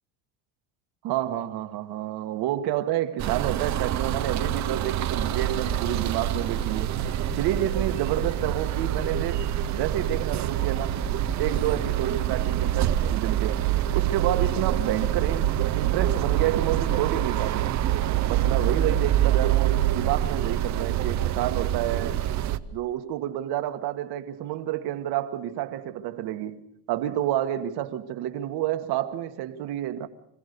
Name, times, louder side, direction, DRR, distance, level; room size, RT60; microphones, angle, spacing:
voice 1, 1.0-7.0 7.3-11.0 11.4-17.8 18.3-22.2 22.7-26.6 26.9-30.1, right 12 dB, 60° right, 1.6 m, -29 dB
sound 1, 3.2-22.6, right 12 dB, 40° right, 0.8 m, -26 dB
sound 2, 4.5-4.9 5.2-6.0 6.3-6.7 7.0-7.9 8.2-8.6 8.9-9.8 10.1-10.5 10.8-11.9, left 1 dB, 30° left, 1.3 m, -38 dB
25.5 x 16.0 x 6.8 m
cardioid pair, 125°, 43 cm